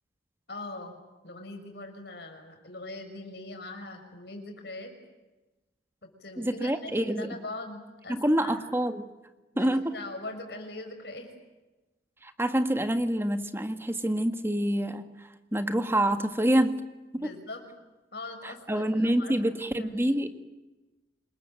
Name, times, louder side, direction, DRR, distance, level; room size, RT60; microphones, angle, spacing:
voice 1, 0.5-1.0 1.2-4.9 6.0-8.6 9.5-11.3 17.2-17.6 18.1-19.5 19.8-20.2, left 2 dB, 60° left, 5 dB, 6.0 m, -41 dB
voice 2, 6.4-7.4 8.1-9.0 9.6-9.9 12.2-15.1 15.5-16.8 17.1-17.3 18.4-20.3, right 1 dB, 15° right, 8 dB, 1.7 m, -27 dB
27.5 x 22.0 x 9.1 m, 1.1 s
head